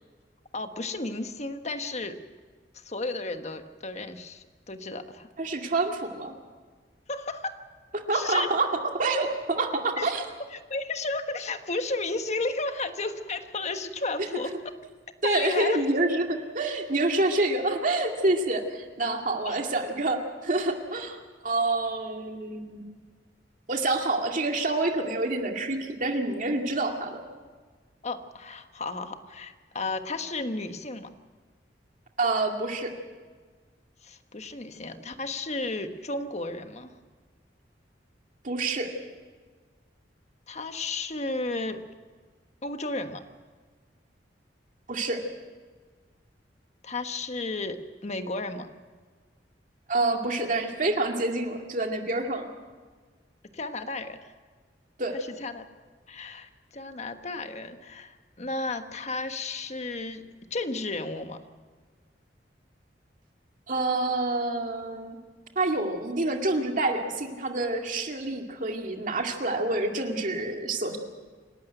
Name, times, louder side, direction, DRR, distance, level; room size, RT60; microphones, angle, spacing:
voice 1, 0.5-2.2 2.7-5.3 7.1-7.6 8.1-8.5 10.0-10.1 10.5-14.6 15.2-15.8 19.4-19.6 28.0-31.1 34.0-36.9 40.5-41.8 42.6-43.2 46.8-48.7 53.5-54.3 55.4-55.6 56.1-60.2 60.5-61.4, left 3 dB, 40° left, 8 dB, 1.4 m, -33 dB
voice 2, 5.4-6.3 7.9-8.7 9.0-10.3 14.3-14.4 15.2-22.8 23.7-27.2 32.2-32.9 38.4-38.9 44.9-45.2 49.9-52.5 55.0-55.2 63.7-65.2 65.6-71.0, right 2 dB, 50° right, 3 dB, 2.2 m, -27 dB
27.5 x 12.5 x 9.2 m, 1.5 s
head